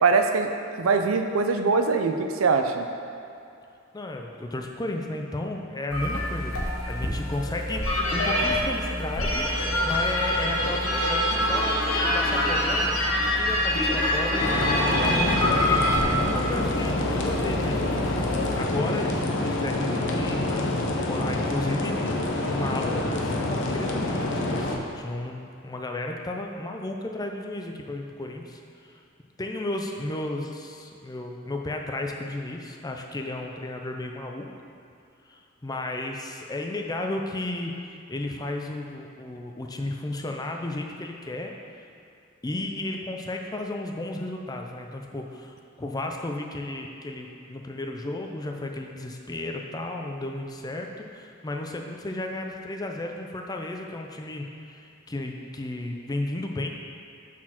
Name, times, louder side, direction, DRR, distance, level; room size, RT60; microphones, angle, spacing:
voice 1, 0.0-0.5 0.8-2.9, right 4 dB, 85° right, 6 dB, 0.5 m, -22 dB
voice 2, 3.9-9.5 9.9-11.8 12.1-14.5 14.9-17.8 18.6-29.0 29.4-34.5 35.3-37.7 38.1-41.5 42.4-56.7, left 2 dB, 20° left, 2 dB, 0.5 m, -33 dB
sound 1, 5.9-18.6, left 1 dB, 90° left, 1.3 m, -26 dB
sound 2, 14.4-24.8, left 2 dB, 60° left, 0.7 m, -27 dB
6.2 x 4.5 x 5.9 m, 2.6 s
head